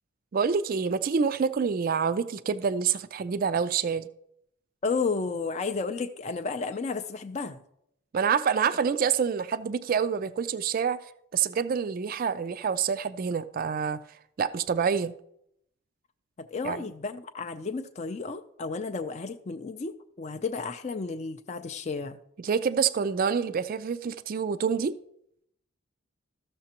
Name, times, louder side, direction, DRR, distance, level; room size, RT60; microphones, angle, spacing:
voice 1, 0.3-4.1 8.1-11.0 11.3-14.0 14.4-15.1 16.6-16.8 22.4-25.0, right 6 dB, 40° right, 13 dB, 0.3 m, -27 dB
voice 2, 4.8-7.6 16.4-22.2, left 4 dB, 30° left, 7 dB, 0.4 m, -32 dB
13.5 x 6.6 x 2.9 m, 0.73 s
head